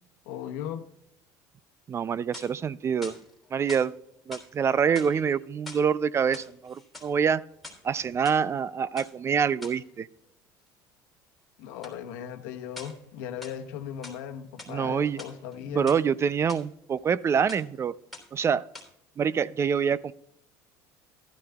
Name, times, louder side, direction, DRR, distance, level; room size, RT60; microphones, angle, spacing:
voice 1, 0.3-0.8 11.6-15.9, left 9 dB, 80° left, 6 dB, 1.0 m, -37 dB
voice 2, 1.9-3.2 3.5-3.9 4.3-7.4 7.8-10.1 14.7-15.2 15.7-17.9 18.3-18.7 19.2-20.1, right 7 dB, 30° right, 19 dB, 0.3 m, -26 dB
sound 1, 2.1-2.7 3.0-3.9 4.3-4.5 4.9-5.9 6.2-7.1 7.5-8.4 9.0-9.1 9.6-9.8 11.8-12.0 12.8-13.1 13.4-14.2 14.6-14.8 15.1-16.0 16.5-16.6 17.0-17.2 17.5-17.8 18.1-18.4 18.7-18.9, left 2 dB, ahead, 3.3 m, -45 dB
15.0 x 12.5 x 2.3 m, 0.76 s
supercardioid pair, 95°, 9 cm